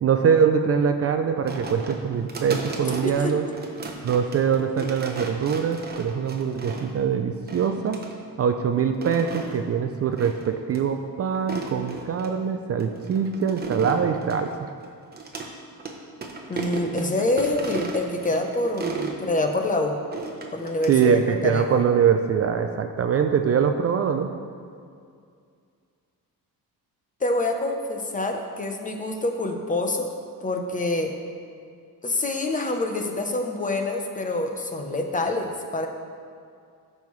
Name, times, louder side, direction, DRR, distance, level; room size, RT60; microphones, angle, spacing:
voice 1, 0.0-3.4 4.0-8.0 8.4-14.5 20.9-24.3, right 7 dB, 40° right, 6 dB, 0.4 m, -23 dB
sound 1, 1.5-7.0 7.5-8.1 8.8-9.6 10.2-10.5 10.7-10.8 11.3-12.3 12.8-15.5 15.8-15.9 16.2-19.2 20.1-21.2, right 4 dB, 25° right, 0.9 m, -35 dB
voice 2, 3.0-3.3 16.5-20.0 20.5-21.8 27.2-30.1 30.4-31.1 32.0-35.9, left 2 dB, 20° left, 4 dB, 0.7 m, -26 dB
13.5 x 5.5 x 3.1 m, 2.3 s
cardioid pair, 140°, 36 cm